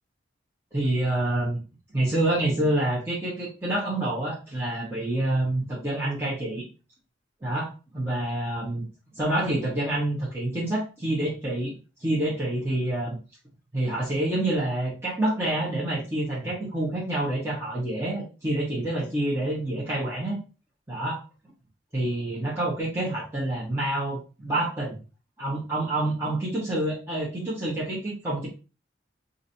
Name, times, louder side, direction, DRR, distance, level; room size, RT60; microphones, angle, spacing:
voice 1, 0.7-1.6 1.9-6.7 7.4-8.8 9.1-11.7 12.0-13.2 13.7-20.4 20.9-21.2 21.9-25.0 25.4-28.5, right 1 dB, 15° right, -8 dB, 1.0 m, -27 dB
4.8 x 2.6 x 2.8 m, 0.33 s
head